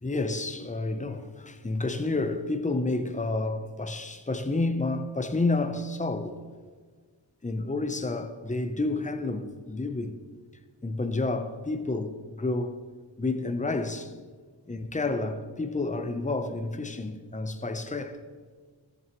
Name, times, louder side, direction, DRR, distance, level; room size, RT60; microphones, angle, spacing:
voice 1, 0.0-6.4 7.4-10.2 10.8-12.8 13.2-14.1 14.7-18.2, left 2 dB, 15° left, 0.7 m, -30 dB
14.0 x 9.1 x 3.1 m
wide cardioid pair, 55°, 48 cm